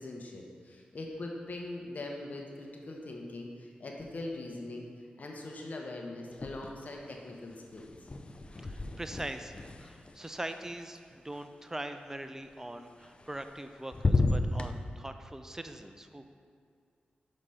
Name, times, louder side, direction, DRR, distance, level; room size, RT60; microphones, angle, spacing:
voice 1, 0.0-4.9 5.2-7.9, left 2 dB, 60° left, 0 dB, 1.0 m, -41 dB
sound 1, 6.3-7.0 7.3-11.4 13.0-13.7 13.9-14.7, left 3 dB, 35° left, 0.5 m, -33 dB
voice 2, 8.6-16.3, right 1 dB, 15° right, 8 dB, 0.5 m, -42 dB
6.4 x 5.1 x 5.6 m, 2.2 s
cardioid pair, 65°, 3 cm